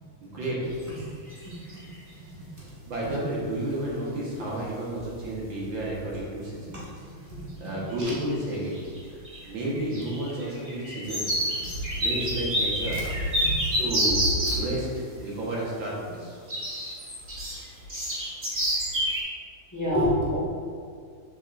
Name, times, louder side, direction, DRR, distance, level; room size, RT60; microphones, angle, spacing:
voice 1, 0.2-0.8 2.9-6.8 7.6-8.8 9.5-11.4 11.9-13.0 13.8-14.9 15.2-16.4, right 1 dB, 65° right, -5 dB, 2.1 m, -31 dB
sound 1, 0.8-1.0 1.3-1.9 3.9-4.0 4.6-4.7 5.0-5.3 5.6-6.2 6.7-6.8 7.9-8.4 8.6-14.6 16.5-19.2, equal, 25° right, 1.8 m, -28 dB
voice 2, 7.4-8.1 19.7-20.4, left 1 dB, 10° left, -8 dB, 1.6 m, -27 dB
7.9 x 7.2 x 2.6 m, 2.1 s
omnidirectional pair, 2.3 m